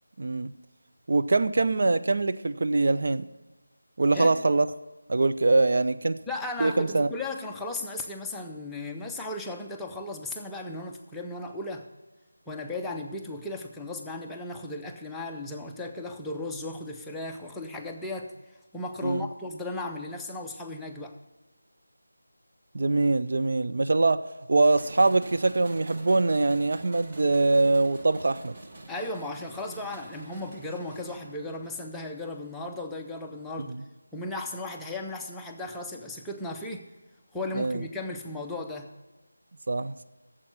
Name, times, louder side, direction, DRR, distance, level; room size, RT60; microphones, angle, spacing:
voice 1, 0.2-0.5 1.1-3.3 4.0-4.7 5.1-6.2 6.6-7.1 19.0-19.3 22.7-28.5 33.7-33.8 37.6-37.8 39.7-40.0, right 3 dB, 45° right, 10 dB, 0.4 m, -23 dB
voice 2, 6.3-11.9 12.5-18.3 18.7-21.2 28.9-33.8 34.1-36.9 37.3-38.9, left 2 dB, 5° left, 0 dB, 0.5 m, -36 dB
sound 1, 24.7-31.8, right 2 dB, 25° right, 1.0 m, -46 dB
8.5 x 7.5 x 7.9 m, 1.2 s
figure-of-eight pair, 160°, 0 cm